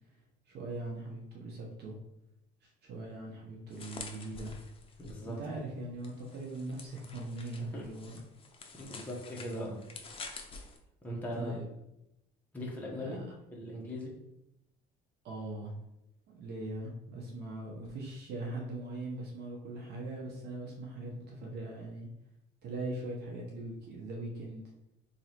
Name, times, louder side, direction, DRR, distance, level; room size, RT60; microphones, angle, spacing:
voice 1, 0.5-1.9 2.6-4.5 5.2-8.1 11.3-11.7 12.9-13.2 15.2-15.7 16.3-22.1 22.6-24.6, right 2 dB, 60° right, -1 dB, 0.9 m, -40 dB
sound 1, 3.7-5.3 6.0-10.8, left 4 dB, 30° left, 0.6 m, -48 dB
voice 2, 5.0-5.4 7.7-7.8 8.7-9.8 11.0-11.5 12.5-14.1, equal, 10° left, -4 dB, 1.0 m, -39 dB
2.9 x 2.9 x 4.2 m, 0.85 s
cardioid pair, 105°, 19 cm